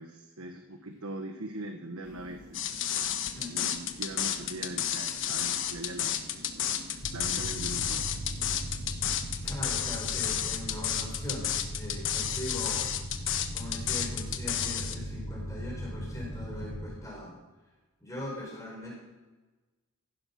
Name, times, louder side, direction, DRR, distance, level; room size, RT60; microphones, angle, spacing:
voice 1, 0.0-2.7 3.5-8.1, right 1 dB, 75° right, 5 dB, 1.2 m, -41 dB
sound 1, 2.0-9.6, right 1 dB, 55° right, 1.6 m, -49 dB
sound 2, 2.5-14.9, left 10 dB, 60° left, 1.2 m, -31 dB
voice 2, 3.2-3.7 9.1-9.2 9.4-12.9 13.2-17.3 18.0-19.0, left 1 dB, 15° left, -3 dB, 4.6 m, -41 dB
sound 3, 7.0-16.9, equal, 85° left, 4.5 m, -38 dB
15.5 x 11.0 x 5.9 m, 1.2 s
head